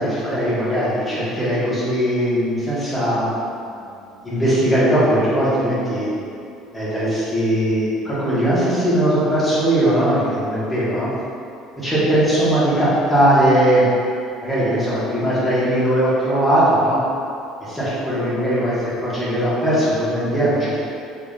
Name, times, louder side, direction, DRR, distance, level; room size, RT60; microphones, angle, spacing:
voice 1, 0.0-3.3 4.2-6.1 6.7-11.1 11.8-13.9 14.4-17.0 17.6-20.8, right 1 dB, 10° left, -10 dB, 1.5 m, -19 dB
3.6 x 3.6 x 2.4 m, 2.5 s
supercardioid pair, 105°, 0 cm